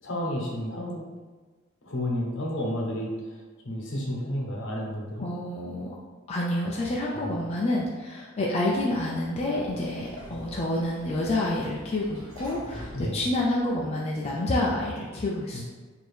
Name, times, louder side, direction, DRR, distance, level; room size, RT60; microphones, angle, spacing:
voice 1, 0.0-1.0 1.8-3.4 3.6-5.3 7.1-7.4 12.9-13.2 15.5-15.6, equal, 60° left, -2 dB, 0.9 m, -31 dB
voice 2, 5.2-5.9 6.3-15.6, left 1 dB, 30° left, -4 dB, 0.4 m, -28 dB
Sliding door, 9.0-14.1, equal, 70° right, 1.4 m, -46 dB
4.4 x 2.8 x 3.3 m, 1.4 s
head